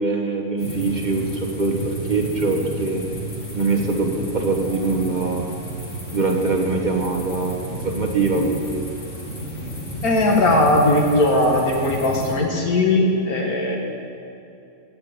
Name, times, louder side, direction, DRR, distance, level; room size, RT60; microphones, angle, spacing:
voice 1, 0.0-3.0 3.5-5.5 6.1-8.8, right 3 dB, 35° right, 0 dB, 1.3 m, -23 dB
sound 1, 0.6-12.3, equal, 50° left, 2.5 m, -32 dB
voice 2, 10.0-13.8, left 1 dB, 90° left, 0 dB, 2.3 m, -18 dB
16.5 x 5.7 x 8.4 m, 2.7 s
omnidirectional pair, 1.5 m